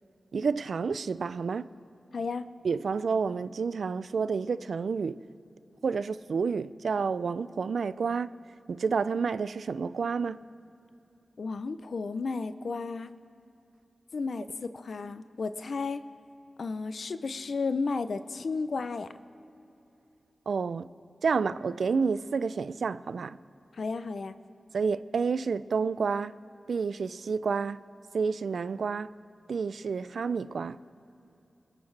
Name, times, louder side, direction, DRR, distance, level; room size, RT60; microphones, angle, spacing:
voice 1, 0.3-1.7 2.6-5.2 5.8-8.3 8.7-10.4 20.5-20.9 21.2-23.4 24.7-26.3 26.7-27.8 28.1-29.1 29.5-30.8, right 5 dB, 80° right, 0.3 m, -29 dB
voice 2, 2.1-2.4 11.4-13.1 14.1-16.0 16.6-19.1 23.8-24.4, left 4 dB, 75° left, 0.5 m, -33 dB
21.5 x 14.0 x 3.3 m
cardioid pair, 50°, 0 cm